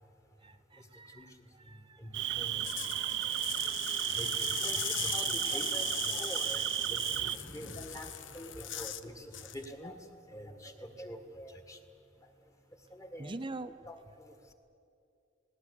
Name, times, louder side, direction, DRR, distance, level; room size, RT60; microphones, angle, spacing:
voice 1, 0.4-1.3 1.7-2.0 13.2-13.7, right 2 dB, 25° right, 11 dB, 0.7 m, -43 dB
voice 2, 1.2-2.6 4.1-10.0 10.3-11.8 12.2-12.3 12.9-13.4 13.9-14.3, equal, 15° left, 7 dB, 1.8 m, -46 dB
Cricket, 2.1-7.4, right 13 dB, 70° right, 0.6 m, -33 dB
sound 1, 2.4-9.1 9.3-9.7, left 11 dB, 85° left, 0.9 m, -40 dB
19.0 x 18.0 x 9.9 m, 2.7 s
head